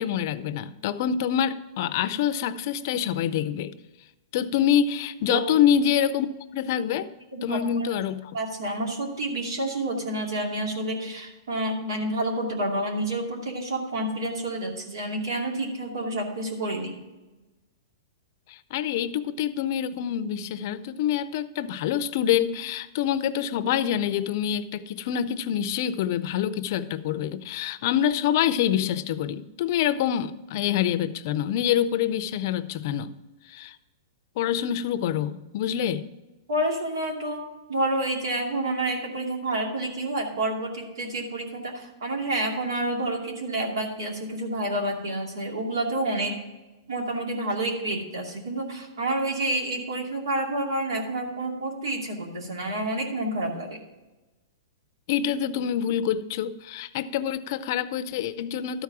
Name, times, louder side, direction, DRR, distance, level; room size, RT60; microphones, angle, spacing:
voice 1, 0.0-3.7 4.3-6.3 6.5-7.1 7.4-8.3 18.5-33.1 33.5-33.8 34.4-36.0 55.1-58.8, left 9 dB, 45° left, 13 dB, 0.5 m, -26 dB
voice 2, 7.3-7.9 8.3-16.9 36.5-37.4 37.7-46.4 46.9-53.8, right 1 dB, 85° right, 1 dB, 2.5 m, -29 dB
12.5 x 4.8 x 5.9 m, 1.1 s
hypercardioid pair, 150°, 2 cm